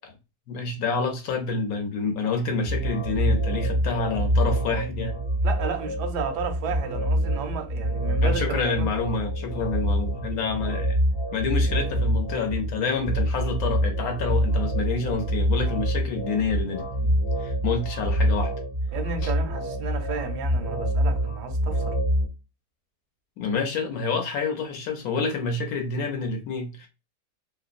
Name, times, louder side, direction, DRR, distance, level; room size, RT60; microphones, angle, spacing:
voice 1, 0.5-5.2 8.2-11.0 11.3-17.1 17.4-18.5 19.2-19.3 23.4-26.9, left 4 dB, 70° left, 1.0 m, -28 dB
sound 1, 2.6-22.3, right 1 dB, 30° left, 0.5 m, -26 dB
voice 2, 5.4-8.9 18.9-22.0, right 5 dB, 85° right, 1.2 m, -33 dB
2.9 x 2.0 x 2.4 m
omnidirectional pair, 1.7 m